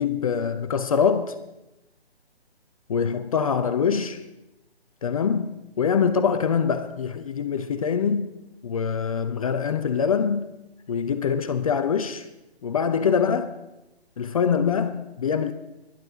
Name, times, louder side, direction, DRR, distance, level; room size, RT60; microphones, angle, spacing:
voice 1, 0.0-1.3 2.9-4.2 5.0-8.3 8.6-10.5 10.9-12.3 12.6-13.6 14.2-15.5, left 6 dB, 35° left, 0.6 m, -24 dB
19.5 x 11.0 x 3.9 m
figure-of-eight pair, 140°, 32 cm